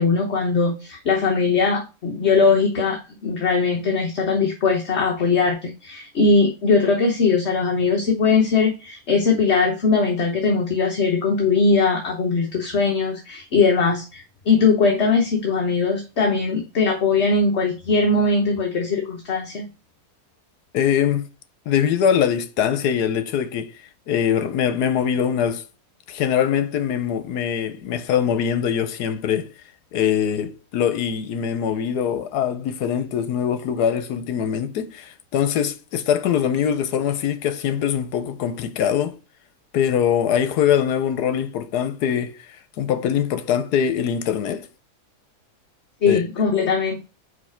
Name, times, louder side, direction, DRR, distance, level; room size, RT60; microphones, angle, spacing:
voice 1, 0.0-19.7 46.0-47.1, left 4 dB, 45° left, 1.2 m, -20 dB
voice 2, 20.7-21.2 21.7-23.7 24.1-25.6 26.1-29.5 29.9-39.2 39.7-42.4 42.8-44.7 46.1-46.2, left 8 dB, 80° left, 1.3 m, -22 dB
5.2 x 4.2 x 5.8 m
omnidirectional pair, 1.7 m